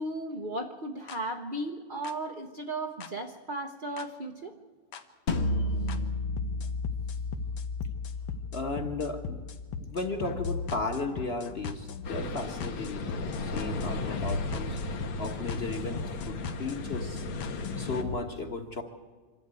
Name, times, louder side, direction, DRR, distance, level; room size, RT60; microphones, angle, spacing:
voice 1, 0.0-4.5 5.6-5.7, right 1 dB, 45° right, 2 dB, 0.7 m, -35 dB
sound 1, 1.1-1.2 2.0-2.1 3.0-3.1 4.0-4.1 4.9-5.0 5.9-6.0 6.4-18.2, left 4 dB, 85° left, 2.1 m, -38 dB
sound 2, 5.3-10.4, left 2 dB, 50° left, 0.8 m, -33 dB
voice 2, 8.5-9.5 9.8-17.2 17.8-18.8, left 3 dB, 35° left, 5 dB, 1.4 m, -35 dB
sound 3, 12.0-18.0, left 2 dB, 70° left, 2.1 m, -36 dB
25.0 x 13.0 x 9.1 m, 1.4 s
omnidirectional pair, 2.4 m